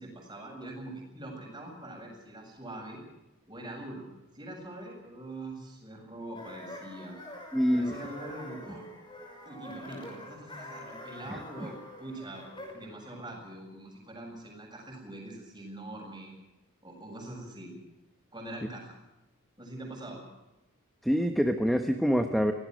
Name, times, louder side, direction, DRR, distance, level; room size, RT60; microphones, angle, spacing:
voice 1, 0.0-3.0 3.5-4.0 4.3-7.2 7.7-8.9 9.5-12.4 12.7-16.3 16.8-17.8 18.3-19.0 19.6-20.2, right 1 dB, 20° right, 1 dB, 7.5 m, -43 dB
sound 1, 6.3-12.9, left 1 dB, 20° left, 6.4 m, -45 dB
voice 2, 7.5-8.0 11.3-11.4 21.0-22.5, equal, ahead, 6 dB, 1.1 m, -26 dB
25.0 x 18.5 x 6.4 m, 0.96 s
head